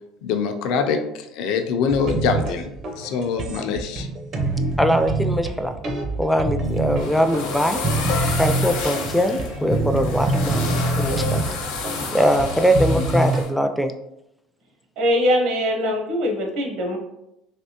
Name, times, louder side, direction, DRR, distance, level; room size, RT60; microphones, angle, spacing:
voice 1, 0.2-2.7 3.0-4.1, left 5 dB, 70° left, 6 dB, 0.4 m, -24 dB
sound 1, 1.9-13.4, right 2 dB, 50° right, 0.6 m, -25 dB
voice 2, 4.8-5.7 6.2-7.8 8.4-10.6 11.0-11.5 12.1-13.9, equal, 5° left, 7 dB, 0.3 m, -21 dB
sound 2, 6.6-13.5, left 4 dB, 90° left, 0.8 m, -30 dB
voice 3, 15.0-17.0, equal, 70° right, 1 dB, 1.0 m, -22 dB
3.4 x 2.7 x 2.8 m, 0.85 s
supercardioid pair, 105°, 0 cm